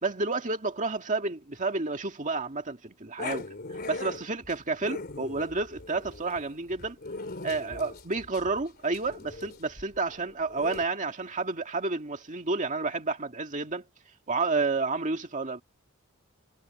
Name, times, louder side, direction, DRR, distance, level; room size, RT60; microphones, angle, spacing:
voice 1, 0.0-3.5 3.9-7.0 7.4-13.8 14.3-15.6, right 3 dB, 35° right, 2.1 m, -30 dB
Growling, 3.2-10.9, left 3 dB, 45° left, 3.5 m, -40 dB
head